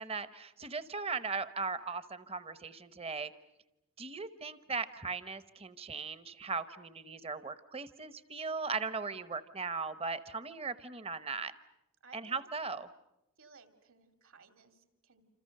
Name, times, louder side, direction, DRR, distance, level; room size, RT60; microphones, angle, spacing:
voice 1, 0.0-3.3 4.0-11.5 12.1-12.9, right 4 dB, 25° right, 14 dB, 0.9 m, -38 dB
voice 2, 12.0-12.6 13.4-15.2, right 4 dB, 65° right, 9 dB, 2.7 m, -59 dB
28.5 x 27.0 x 6.6 m, 0.89 s
head